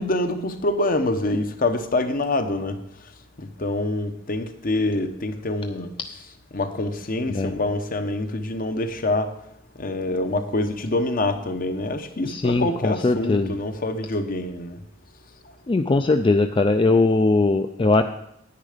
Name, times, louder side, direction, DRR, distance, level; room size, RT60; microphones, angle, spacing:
voice 1, 0.0-2.8 3.4-5.9 6.5-9.4 9.8-14.8, left 2 dB, 45° left, 0.9 m, -26 dB
voice 2, 12.2-13.5 15.7-18.0, left 3 dB, 25° left, 0.4 m, -20 dB
10.0 x 9.3 x 5.0 m
head